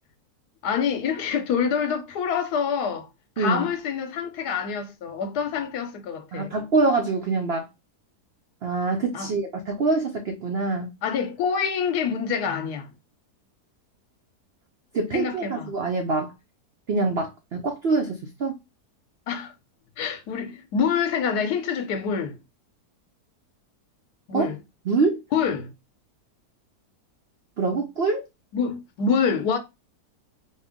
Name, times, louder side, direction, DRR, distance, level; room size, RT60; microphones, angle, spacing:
voice 1, 0.6-3.1 3.4-6.5 9.1-9.3 11.0-12.9 15.1-15.7 19.3-19.5 20.0-22.4 24.3-24.6 25.3-25.7 28.5-29.6, left 6 dB, 75° left, 1.2 m, -26 dB
voice 2, 3.4-3.7 6.3-7.7 8.6-10.9 14.9-16.3 16.9-18.6 24.3-24.5 24.9-25.2 27.6-28.2, right 3 dB, 75° right, 0.5 m, -25 dB
4.3 x 2.0 x 3.5 m
omnidirectional pair, 1.8 m